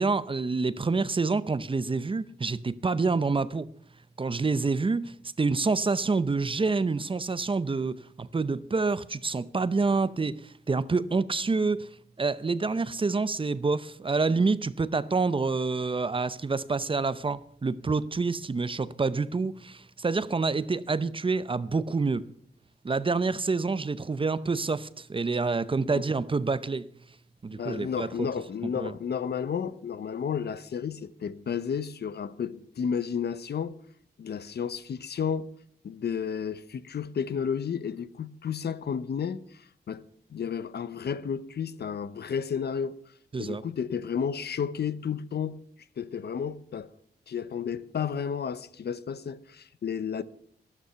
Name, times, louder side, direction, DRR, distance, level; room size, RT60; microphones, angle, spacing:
voice 1, 0.0-3.7 4.2-11.9 12.2-22.2 22.8-26.9 27.4-28.3 28.8-28.9 43.3-43.6, right 4 dB, 30° right, 0.7 m, -27 dB
voice 2, 27.5-33.8 34.2-35.5 35.8-40.0 40.3-43.0 43.4-45.6 46.0-46.9 47.3-50.2, left 7 dB, 70° left, 0.8 m, -32 dB
13.0 x 12.5 x 5.7 m
wide cardioid pair, 100°, 18 cm